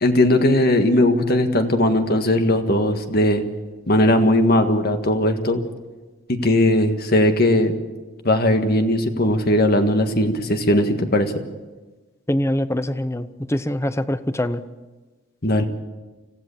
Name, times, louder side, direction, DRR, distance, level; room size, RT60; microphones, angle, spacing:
voice 1, 0.0-3.4 3.9-5.6 6.3-7.7 8.2-11.3 15.4-15.7, left 1 dB, 50° left, 7 dB, 1.7 m, -18 dB
voice 2, 12.3-14.6, left 1 dB, 15° left, 12 dB, 0.7 m, -24 dB
25.5 x 16.0 x 7.2 m, 1.2 s
head